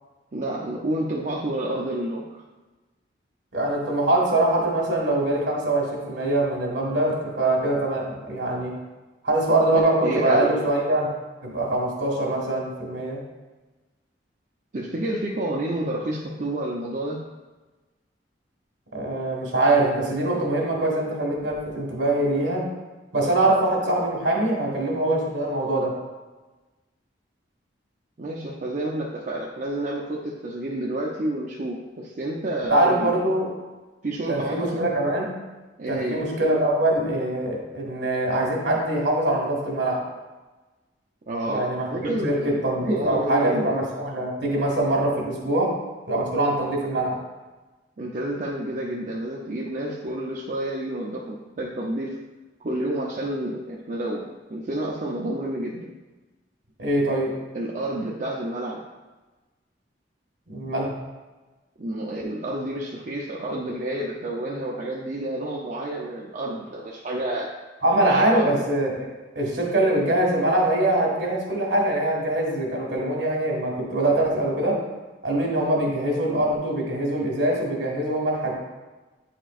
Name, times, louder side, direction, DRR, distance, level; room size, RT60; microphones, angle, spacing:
voice 1, 0.3-2.4 9.7-10.5 14.7-17.2 28.2-33.1 34.0-34.9 35.8-36.2 41.3-43.7 48.0-52.2 52.6-55.9 57.5-58.8 61.8-67.5 68.0-68.6, right 1 dB, 45° right, -4 dB, 0.6 m, -29 dB
voice 2, 3.5-8.7 9.2-11.1 11.4-13.2 18.9-22.7 23.1-25.9 32.7-33.5 34.3-35.3 35.9-40.0 41.4-45.7 46.1-47.2 56.8-57.3 60.5-60.9 67.8-69.0 69.3-74.8 75.2-78.5, right 1 dB, 70° right, -2 dB, 1.7 m, -23 dB
8.9 x 4.5 x 2.5 m, 1.2 s
head